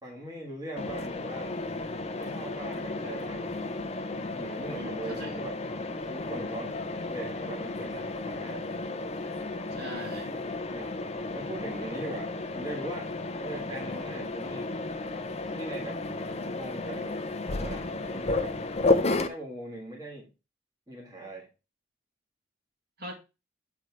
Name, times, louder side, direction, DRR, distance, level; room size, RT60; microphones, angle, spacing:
voice 1, 0.0-1.5 2.1-3.8 4.3-5.6 6.1-6.7 7.1-8.7 10.7-11.0 11.3-13.1 13.4-14.7 15.5-16.0 16.5-18.6 19.1-20.3 20.9-21.5, right 1 dB, 20° right, -2 dB, 1.7 m, -41 dB
Mechanisms, 0.8-19.3, left 2 dB, 35° left, 0.6 m, -33 dB
voice 2, 4.7-5.4 9.7-10.3 23.0-23.1, equal, 55° right, 0 dB, 2.3 m, -41 dB
8.0 x 3.5 x 4.6 m, 0.28 s
head